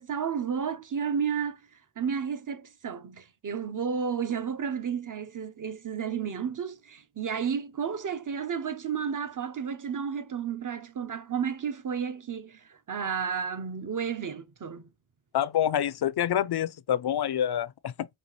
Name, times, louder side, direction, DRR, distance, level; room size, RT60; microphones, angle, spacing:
voice 1, 0.0-1.6 2.0-14.9, right 7 dB, 40° right, 0.7 m, -32 dB
voice 2, 15.3-18.1, left 10 dB, 55° left, 0.5 m, -27 dB
5.4 x 2.4 x 3.1 m
cardioid pair, 50°, 47 cm